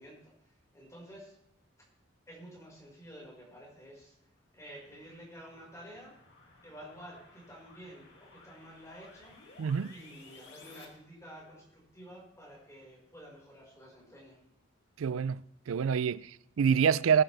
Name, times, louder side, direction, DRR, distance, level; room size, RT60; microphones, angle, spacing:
voice 1, 0.0-1.3 2.3-4.1 4.5-6.2 6.6-9.3 9.9-14.4, equal, 15° left, 5.0 m, -51 dB
sound 1, 4.3-10.9, left 3 dB, 65° left, 2.6 m, -57 dB
voice 2, 9.6-9.9 15.0-15.4 15.7-17.2, right 7 dB, 90° right, 0.4 m, -26 dB
20.5 x 10.5 x 3.4 m
head